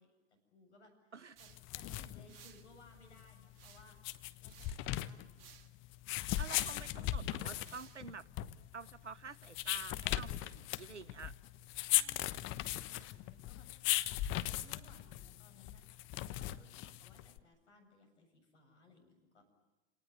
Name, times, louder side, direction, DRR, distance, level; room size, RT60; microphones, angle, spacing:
voice 1, 0.0-4.0 4.4-5.5 11.9-13.7 14.0-19.5, left 1 dB, 70° left, 6 dB, 7.5 m, -63 dB
sound 1, 1.4-1.6 2.3-2.7 3.5-4.0 4.4-4.8 5.4-5.7 6.3-6.6 7.5-8.1, right 8 dB, 55° right, 2.2 m, -59 dB
sound 2, 1.5-17.4, left 15 dB, 35° left, 1.1 m, -38 dB
voice 2, 6.4-8.3 8.7-11.3, right 5 dB, 90° right, 19 dB, 1.0 m, -48 dB
29.0 x 19.0 x 9.5 m, 1.1 s
figure-of-eight pair, 100°, 35 cm